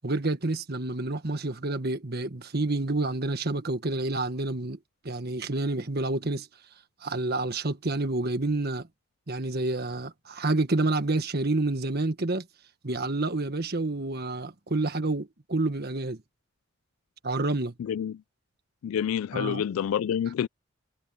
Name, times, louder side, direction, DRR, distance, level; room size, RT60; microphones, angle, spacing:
voice 1, 0.0-4.8 5.0-6.5 7.0-8.9 9.3-12.5 12.8-16.2 17.2-17.7 19.3-19.6, right 2 dB, 50° right, 1.6 m, -28 dB
voice 2, 17.8-18.2 18.8-20.5, left 9 dB, 90° left, 0.3 m, -28 dB
head